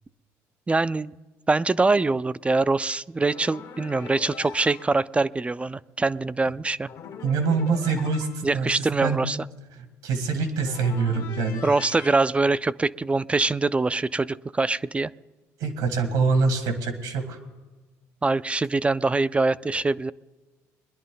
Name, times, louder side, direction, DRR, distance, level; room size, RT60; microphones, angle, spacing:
voice 1, 0.7-1.1 1.5-6.9 8.4-9.4 11.6-15.1 18.2-20.1, right 3 dB, 20° right, 17 dB, 0.3 m, -23 dB
sound 1, 3.2-5.0 6.9-8.6 10.6-12.2, left 7 dB, 70° left, 1.3 m, -41 dB
voice 2, 7.2-8.3 8.5-9.2 9.7-11.6 15.6-17.4, right 4 dB, 85° right, 7 dB, 1.9 m, -25 dB
21.5 x 10.5 x 3.8 m, 1.2 s
supercardioid pair, 80°, 7 cm